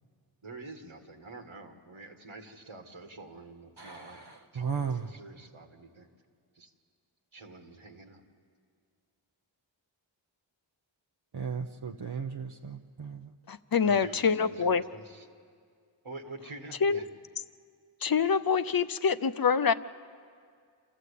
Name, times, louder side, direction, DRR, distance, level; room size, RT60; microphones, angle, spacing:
voice 1, 0.4-4.2 4.5-6.1 6.5-6.7 7.3-8.2 13.8-15.3 16.0-17.1, right 2 dB, 85° right, 3 dB, 1.9 m, -47 dB
voice 2, 3.8-5.1 11.3-13.3, right 6 dB, 55° right, 3 dB, 0.8 m, -36 dB
voice 3, 13.5-14.8 16.8-17.0 18.0-19.7, left 6 dB, 50° left, 13 dB, 0.6 m, -25 dB
28.0 x 14.0 x 8.4 m, 2.2 s
wide cardioid pair, 50°, 48 cm